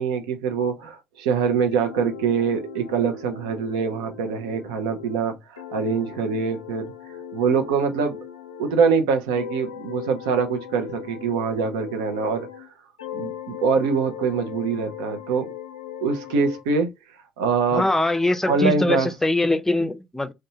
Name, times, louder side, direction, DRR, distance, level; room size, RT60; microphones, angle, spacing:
voice 1, 0.0-6.9 7.3-8.2 8.6-12.7 13.1-15.5 16.0-16.9 17.4-17.8 18.5-19.1, right 5 dB, 75° right, 0.6 m, -24 dB
sound 1, 1.7-8.9 9.3-12.7 13.0-16.6, left 7 dB, 90° left, 0.4 m, -38 dB
voice 2, 17.7-20.3, left 1 dB, 10° left, 0.5 m, -22 dB
2.6 x 2.2 x 2.6 m
hypercardioid pair, 50°, 3 cm